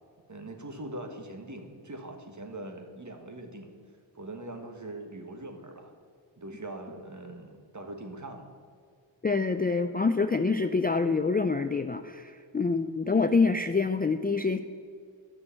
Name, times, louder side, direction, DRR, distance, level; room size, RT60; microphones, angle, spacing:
voice 1, 0.3-3.7 4.1-5.9 6.4-8.5, right 1 dB, 40° right, 4 dB, 1.6 m, -42 dB
voice 2, 9.2-14.6, left 4 dB, 20° left, 8 dB, 0.4 m, -26 dB
11.5 x 6.2 x 7.4 m, 2.2 s
wide cardioid pair, 60°, 46 cm